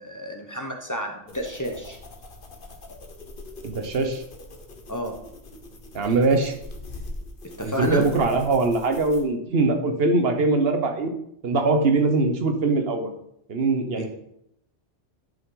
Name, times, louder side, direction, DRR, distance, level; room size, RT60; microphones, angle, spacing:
voice 1, 0.0-2.0 4.9-5.2 7.4-8.0 14.0-14.1, equal, 20° left, 2 dB, 0.8 m, -31 dB
sound 1, 1.3-9.2, left 2 dB, 50° left, 1.2 m, -42 dB
voice 2, 3.6-4.2 5.9-6.5 7.6-11.1 11.4-13.1 13.5-14.1, right 3 dB, 60° right, 5 dB, 1.2 m, -22 dB
11.5 x 5.3 x 3.9 m, 0.75 s
omnidirectional pair, 1.2 m